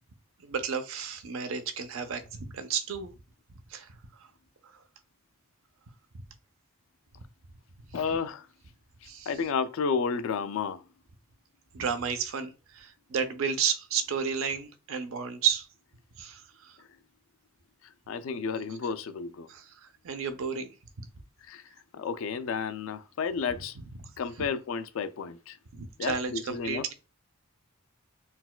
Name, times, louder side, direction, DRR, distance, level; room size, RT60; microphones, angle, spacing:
voice 1, 0.4-3.1 3.7-3.9 9.1-9.3 11.7-15.7 16.2-16.7 19.5-20.7 25.7-26.9, right 7 dB, 65° right, 0.5 m, -32 dB
voice 2, 7.9-8.5 9.0-10.8 16.8-16.9 17.8-19.5 21.4-23.8 24.2-25.6 26.0-26.9, left 5 dB, 65° left, 0.3 m, -32 dB
4.0 x 2.2 x 2.2 m
head